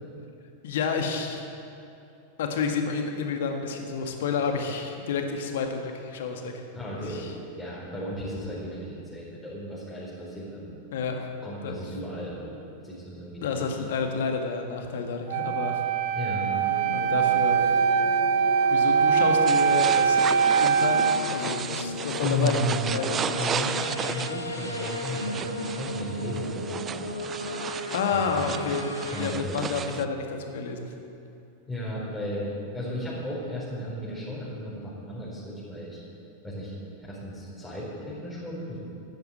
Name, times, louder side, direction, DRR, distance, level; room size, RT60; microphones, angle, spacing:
voice 1, 0.6-1.4 2.4-6.6 6.9-7.3 10.9-11.3 11.6-11.8 13.4-15.8 16.9-17.7 18.7-20.3 20.6-22.6 22.9-23.5 27.9-28.9 29.2-30.9, left 5 dB, 55° left, 4 dB, 1.8 m, -30 dB
voice 2, 6.7-7.2 7.6-10.8 11.4-12.5 12.8-13.5 16.1-16.5 22.2-23.1 23.4-27.0 28.1-28.5 29.1-29.8 31.7-36.0 36.4-36.7 37.0-38.8, equal, 5° left, -9 dB, 4.4 m, -34 dB
Wind instrument woodwind instrument, 15.3-21.2, right 7 dB, 50° right, 1.1 m, -22 dB
sound 1, 16.5-29.3, left 2 dB, 75° left, 1.1 m, -35 dB
sound 2, 19.5-30.0, right 8 dB, 25° right, 0.5 m, -34 dB
13.5 x 10.5 x 8.0 m, 2.7 s
figure-of-eight pair, 90°, 0 cm